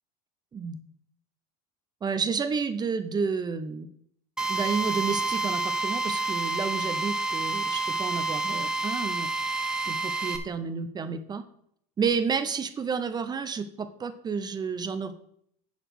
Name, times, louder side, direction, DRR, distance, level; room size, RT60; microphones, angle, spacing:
voice 1, 2.0-3.9 4.5-9.3 9.9-11.4 12.0-15.1, right 5 dB, 25° right, 9 dB, 0.8 m, -30 dB
Drill, 4.4-10.4, right 3 dB, 5° right, 1.0 m, -29 dB
10.0 x 4.2 x 6.3 m, 0.68 s
supercardioid pair, 120°, 17 cm